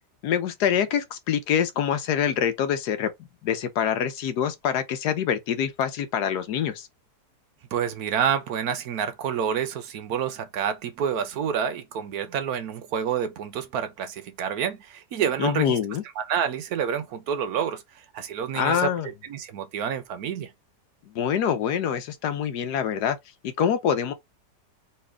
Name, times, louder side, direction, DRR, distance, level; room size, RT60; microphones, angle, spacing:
voice 1, 0.2-3.1 3.4-6.9 15.4-16.0 18.5-19.1 21.1-23.2 23.6-24.1, left 8 dB, 75° left, 1.2 m, -25 dB
voice 2, 7.7-15.8 16.2-18.9 19.3-20.5, right 8 dB, 70° right, 1.1 m, -28 dB
4.2 x 3.1 x 3.4 m
omnidirectional pair, 1.8 m